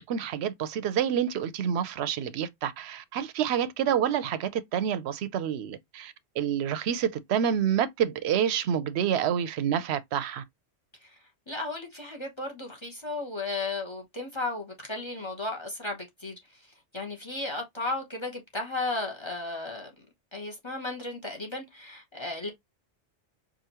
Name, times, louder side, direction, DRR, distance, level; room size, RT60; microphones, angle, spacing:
voice 1, 0.1-10.4, right 9 dB, 70° right, 0.8 m, -28 dB
voice 2, 11.5-16.4 16.9-19.9 20.3-22.5, left 2 dB, 25° left, 0.8 m, -34 dB
4.9 x 2.5 x 2.8 m
omnidirectional pair, 1.2 m